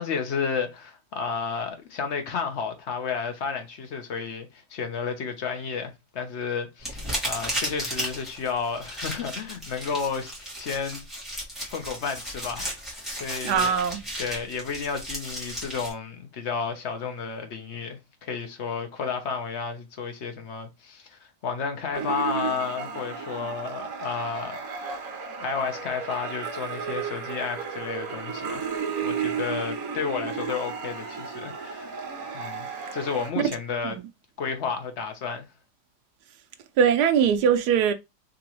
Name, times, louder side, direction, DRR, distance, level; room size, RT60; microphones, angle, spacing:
voice 1, 0.0-11.0 11.7-13.7 14.2-24.9 25.4-28.7 29.0-31.9 32.3-33.9 34.4-35.5, left 5 dB, 50° left, 0.9 m, -32 dB
sound 1, 6.8-15.9, equal, ahead, 1.6 m, -34 dB
voice 2, 13.4-14.0 33.4-33.5 33.8-34.0 36.8-37.9, right 7 dB, 80° right, 1.2 m, -21 dB
sound 2, 21.9-33.3, right 6 dB, 65° right, 1.3 m, -33 dB
3.8 x 3.0 x 3.0 m
omnidirectional pair, 1.7 m